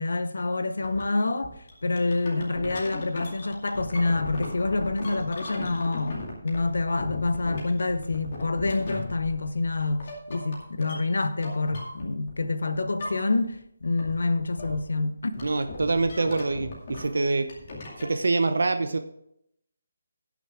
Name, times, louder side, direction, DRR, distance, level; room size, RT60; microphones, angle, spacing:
voice 1, 0.0-1.5 1.8-15.4, left 3 dB, 90° left, 0.9 m, -27 dB
sound 1, 0.8-1.0 1.4-12.5 12.7-13.6 13.8-18.2, left 2 dB, 30° left, 2.3 m, -38 dB
voice 2, 15.4-17.5 18.0-19.0, right 3 dB, 70° right, 0.9 m, -25 dB
18.0 x 6.3 x 3.5 m
hypercardioid pair, 180°, 0 cm